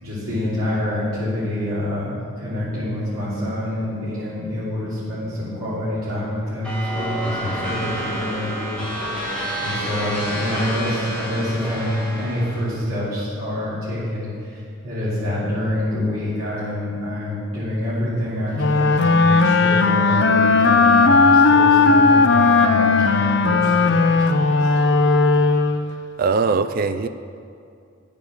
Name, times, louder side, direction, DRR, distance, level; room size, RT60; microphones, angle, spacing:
voice 1, 0.0-24.7, left 1 dB, 80° right, -12 dB, 3.0 m, -26 dB
sound 1, 6.6-12.9, right 1 dB, 5° left, 1.9 m, -29 dB
sound 2, 18.6-26.0, left 4 dB, 50° left, 0.5 m, -16 dB
voice 2, 26.2-27.1, right 4 dB, 40° right, 10 dB, 0.3 m, -20 dB
9.6 x 7.0 x 6.5 m, 2.4 s
head